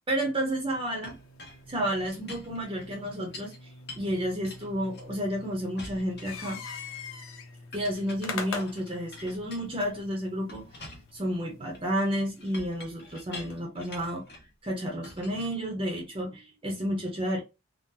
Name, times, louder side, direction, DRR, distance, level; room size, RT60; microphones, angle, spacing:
voice 1, 0.1-1.1 1.7-3.5 4.0-6.6 7.7-10.6 11.1-14.2 14.6-17.4, equal, 25° right, 0.7 m, -31 dB
sound 1, 1.0-13.7, left 4 dB, 85° left, 0.7 m, -44 dB
Chink clink, 1.0-3.6 3.9-5.4 5.8-7.0 7.7-10.0 10.5-14.5 15.0-16.2, left 2 dB, 55° left, 1.1 m, -47 dB
3.7 x 2.1 x 2.6 m
head